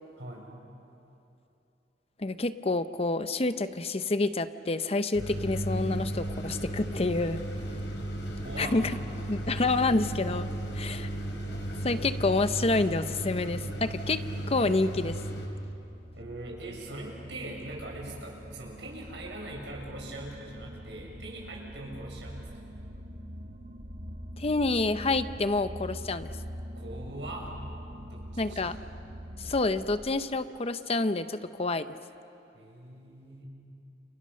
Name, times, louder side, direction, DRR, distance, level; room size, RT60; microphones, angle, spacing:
voice 1, 0.2-0.5 8.4-8.8 16.1-22.5 26.7-27.6 28.1-28.6 32.5-33.5, right 1 dB, 85° right, -1 dB, 6.9 m, -41 dB
voice 2, 2.2-7.4 8.6-8.9 9.3-10.5 10.7-11.1 11.8-14.2 14.5-15.2 24.4-26.3 28.4-28.8 29.4-32.0, left 3 dB, 35° left, 11 dB, 0.8 m, -28 dB
sound 1, 5.1-15.5, right 1 dB, 90° left, 4.8 m, -35 dB
sound 2, 14.3-30.2, equal, 50° right, 1.7 m, -44 dB
29.5 x 29.5 x 6.5 m, 2.8 s
head